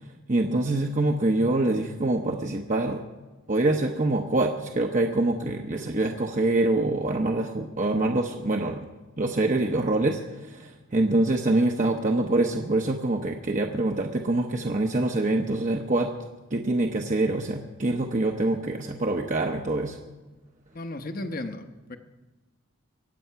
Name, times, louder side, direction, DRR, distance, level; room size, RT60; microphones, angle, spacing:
voice 1, 0.3-3.0 3.5-8.9 9.2-16.1 16.5-20.0, right 2 dB, 35° right, 2 dB, 0.8 m, -25 dB
voice 2, 20.7-22.0, left 2 dB, 40° left, 8 dB, 0.9 m, -35 dB
23.5 x 8.5 x 5.7 m, 1.2 s
head